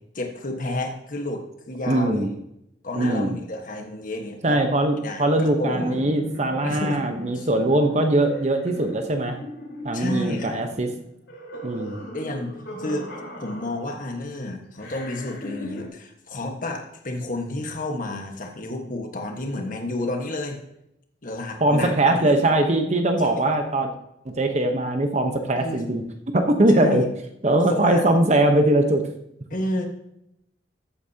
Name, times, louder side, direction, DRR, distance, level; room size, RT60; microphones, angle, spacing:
voice 1, 0.1-2.3 2.8-4.6 5.0-6.1 6.6-7.0 7.3-7.5 9.9-10.6 12.1-13.1 13.4-20.6 21.2-22.5 23.2-23.4 25.6-25.8 26.7-27.0 27.7-28.1 29.5-29.9, left 1 dB, 45° left, 3 dB, 1.5 m, -31 dB
voice 2, 1.9-2.3 3.0-3.4 4.4-9.4 9.8-10.9 11.6-12.0 21.6-23.9 24.2-26.0 26.3-27.0 27.4-29.0, right 1 dB, 40° right, 5 dB, 1.0 m, -21 dB
sound 1, 5.7-14.2 14.8-15.9, equal, 80° left, 4.2 m, -38 dB
14.0 x 8.7 x 2.9 m, 0.80 s
head